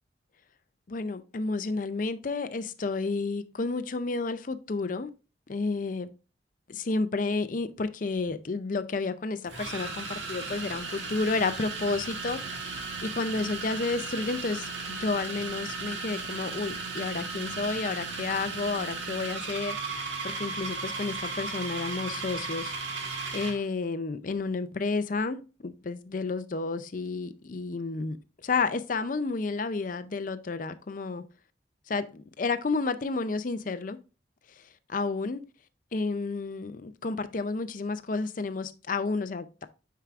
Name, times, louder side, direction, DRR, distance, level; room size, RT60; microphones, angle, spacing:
voice 1, 0.9-5.1 5.5-6.1 6.7-19.8 20.2-22.7 23.3-28.2 28.4-31.2 31.9-34.0 34.6-34.7 34.9-35.4 35.9-39.7, left 3 dB, 45° left, 0.5 m, -31 dB
sound 1, 8.1-8.3 9.5-23.6, right 4 dB, 75° right, 1.5 m, -36 dB
9.0 x 4.7 x 2.4 m
head